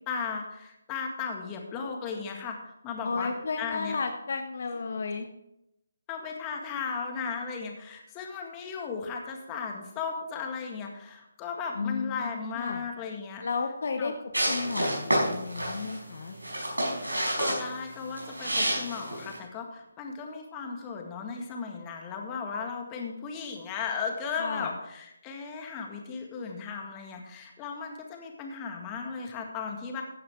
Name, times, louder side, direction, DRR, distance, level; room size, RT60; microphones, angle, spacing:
voice 1, 0.1-4.0 6.1-13.4 14.0-14.1 17.4-30.0, left 5 dB, 20° left, 2 dB, 1.8 m, -36 dB
voice 2, 3.0-5.3 11.8-12.8 13.4-14.1 14.5-16.4 24.4-24.7, left 4 dB, 55° left, 6 dB, 0.9 m, -33 dB
sound 1, 14.3-19.4, right 1 dB, 90° right, 5.4 m, -29 dB
15.0 x 9.3 x 3.6 m, 0.84 s
figure-of-eight pair, 150°, 0 cm